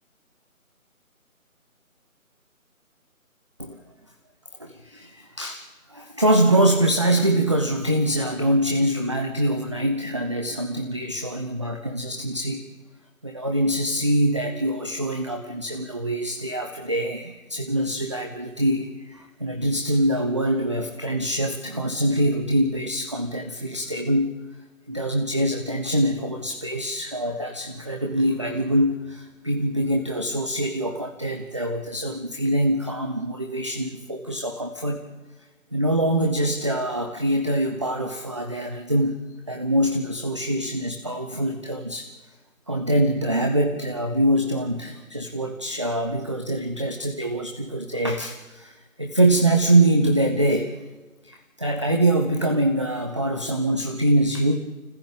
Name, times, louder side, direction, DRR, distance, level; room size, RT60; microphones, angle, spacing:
voice 1, 4.6-12.6 13.2-24.4 24.9-35.0 35.7-42.1 42.7-50.7 51.2-54.6, right 1 dB, 20° right, 4 dB, 0.8 m, -24 dB
29.5 x 15.0 x 8.7 m, 1.2 s
figure-of-eight pair, 160°, 42 cm